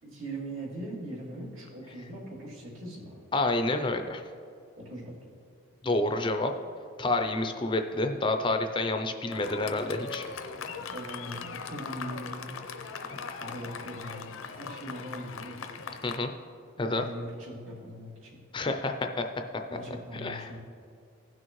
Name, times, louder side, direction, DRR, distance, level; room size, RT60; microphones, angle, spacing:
voice 1, 0.0-3.2 4.8-5.2 10.7-12.7 13.4-15.8 16.9-18.4 19.7-20.6, right 1 dB, 75° right, -5 dB, 2.5 m, -41 dB
voice 2, 3.3-4.2 5.8-6.5 7.0-10.2 13.1-13.4 16.0-16.3 16.8-17.1 18.5-19.3 20.1-20.5, left 2 dB, 25° left, 6 dB, 0.4 m, -29 dB
Fireworks, 9.3-16.2, left 5 dB, 75° left, 0.6 m, -40 dB
16.0 x 6.2 x 3.1 m, 2.4 s
head